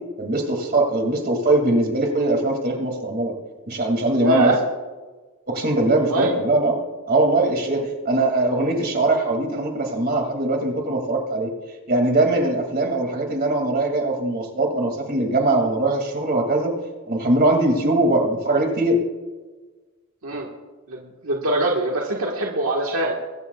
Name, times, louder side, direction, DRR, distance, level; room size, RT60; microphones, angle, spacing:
voice 1, 0.2-3.3 3.7-4.5 5.5-6.7 7.1-11.5 11.9-16.7 17.1-19.0, right 2 dB, 45° right, 3 dB, 2.6 m, -21 dB
voice 2, 4.2-4.6 6.1-6.3 20.2-20.5 20.9-23.1, right 2 dB, 80° right, -2 dB, 1.7 m, -23 dB
23.0 x 12.5 x 2.4 m, 1.3 s
head